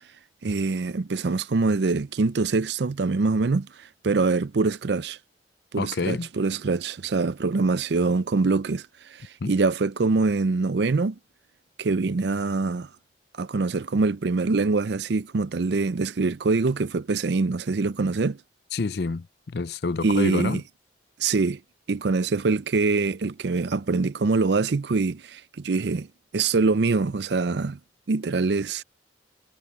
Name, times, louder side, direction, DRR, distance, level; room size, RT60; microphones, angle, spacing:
voice 1, 0.4-5.2 5.7-11.2 11.8-12.9 13.4-18.4 20.0-20.6 21.2-21.6 21.9-26.1 26.3-27.8 28.1-28.8, right 3 dB, 65° right, 0.5 m, -24 dB
voice 2, 5.8-6.3 9.4-9.5 18.7-20.6, left 3 dB, 60° left, 0.5 m, -28 dB
head